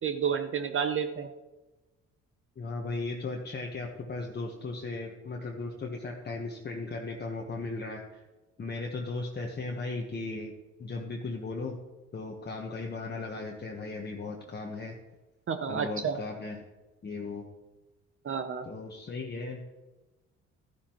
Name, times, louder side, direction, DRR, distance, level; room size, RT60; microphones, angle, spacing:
voice 1, 0.0-1.3 15.5-16.2 18.2-18.7, right 7 dB, 45° right, 8 dB, 0.7 m, -30 dB
voice 2, 2.6-8.2 8.6-10.5 10.8-11.8 12.1-15.0 15.7-16.6 17.0-17.5 18.7-19.6, left 3 dB, 35° left, 0 dB, 1.2 m, -36 dB
13.0 x 10.0 x 3.0 m, 1.1 s
cardioid pair, 90°, 30 cm